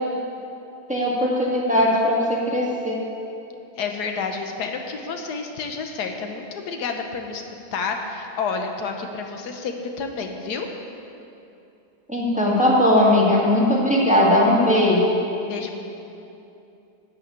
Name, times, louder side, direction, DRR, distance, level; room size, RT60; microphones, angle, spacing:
voice 1, 0.9-3.0 12.1-15.2, left 1 dB, 5° right, -4 dB, 1.7 m, -19 dB
voice 2, 3.8-7.4 7.7-10.7 15.4-15.8, left 5 dB, 80° left, 4 dB, 1.4 m, -29 dB
12.0 x 5.6 x 8.6 m, 2.8 s
omnidirectional pair, 1.7 m